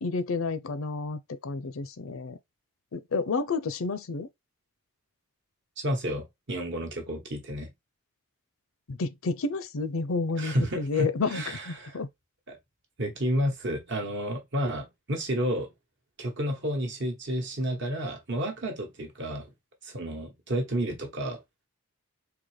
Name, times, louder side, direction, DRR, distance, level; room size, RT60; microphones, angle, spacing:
voice 1, 0.0-2.4 2.9-4.3 8.9-12.1, left 4 dB, 65° left, 0.5 m, -30 dB
voice 2, 5.8-7.7 10.4-12.0 12.5-12.6 13.0-15.7 16.2-19.5 19.8-21.4, equal, 55° right, 1.1 m, -31 dB
3.9 x 2.8 x 3.1 m
head